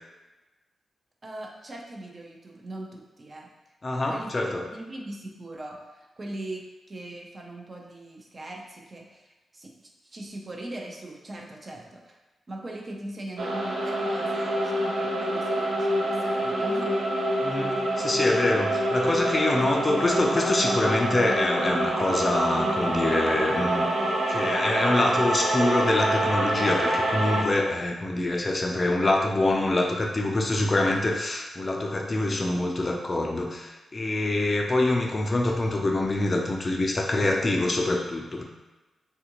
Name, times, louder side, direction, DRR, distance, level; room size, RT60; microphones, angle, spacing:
voice 1, 1.2-3.5 4.1-4.3 4.7-9.7 10.0-12.2 12.5-16.9, right 1 dB, 35° right, 0 dB, 0.5 m, -40 dB
voice 2, 3.8-4.7 17.4-38.4, left 2 dB, 30° left, 1 dB, 0.4 m, -25 dB
sound 1, 13.4-27.4, right 1 dB, 80° right, 0.6 m, -26 dB
Hammer, 18.9-23.6 24.5-24.6, left 2 dB, 85° left, 0.5 m, -40 dB
3.5 x 2.4 x 2.9 m, 1.1 s
cardioid pair, 105°, 0 cm